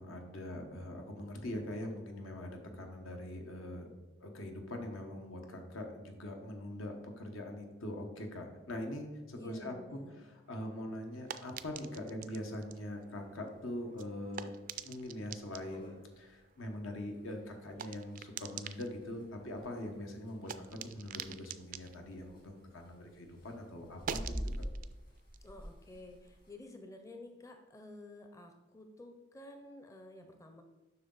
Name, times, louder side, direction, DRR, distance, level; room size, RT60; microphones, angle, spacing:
voice 1, 0.0-3.9 4.2-10.0 10.3-14.5 14.8-24.5, left 1 dB, 80° left, 3 dB, 1.2 m, -43 dB
voice 2, 9.3-10.2 25.4-30.6, left 1 dB, 15° left, 5 dB, 0.5 m, -51 dB
sound 1, 10.4-23.2 23.5-26.7, right 8 dB, 40° right, 0.3 m, -48 dB
sound 2, 12.9-13.2 13.7-13.8 14.3-14.4 14.7-14.8 15.2-15.3 15.5-26.5, equal, 45° left, 1.6 m, -47 dB
7.8 x 5.8 x 4.0 m, 1.2 s
head